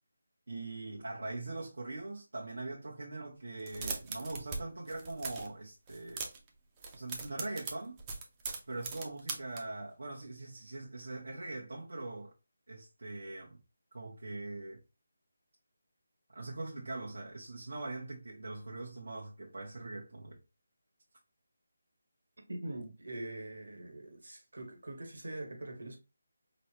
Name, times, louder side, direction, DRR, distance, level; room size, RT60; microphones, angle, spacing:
voice 1, 0.5-6.3 6.9-8.0 8.7-12.3 12.7-13.6 13.9-14.8 16.3-20.4, right 2 dB, 65° right, 1.0 m, -42 dB
sound 1, 3.6-4.6 4.9-5.5 5.9-6.5 6.8-9.6, right 4 dB, 15° right, 0.5 m, -40 dB
voice 2, 22.5-26.0, right 1 dB, 85° right, 1.6 m, -43 dB
5.2 x 2.2 x 3.0 m
figure-of-eight pair, 175°, 0 cm